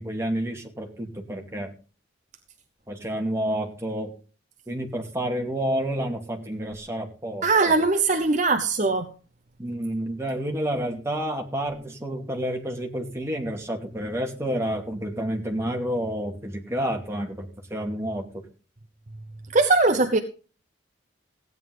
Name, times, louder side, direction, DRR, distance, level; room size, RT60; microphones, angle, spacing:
voice 1, 0.0-1.7 2.9-4.1 4.7-7.5 9.6-18.2, right 1 dB, 15° right, 2.4 m, -29 dB
voice 2, 7.4-9.1 19.5-20.2, right 3 dB, 40° right, 0.9 m, -20 dB
16.0 x 9.6 x 3.9 m
head